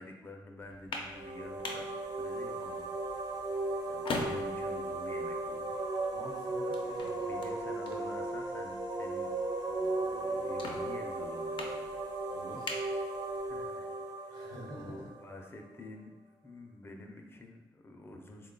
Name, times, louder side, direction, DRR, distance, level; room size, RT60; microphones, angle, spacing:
voice 1, 0.0-2.9 3.8-5.8 6.8-9.3 9.6-12.0 13.5-16.1 16.4-18.5, left 2 dB, 30° left, 3 dB, 0.4 m, -49 dB
sound 1, 0.6-13.7, left 2 dB, 90° left, 0.5 m, -45 dB
sound 2, 1.0-15.7, right 2 dB, 50° right, 0.5 m, -36 dB
voice 2, 6.1-7.5 12.3-12.8 14.3-15.1, equal, 70° right, -3 dB, 1.0 m, -48 dB
3.5 x 2.2 x 3.7 m, 1.1 s
wide cardioid pair, 120°, 8 cm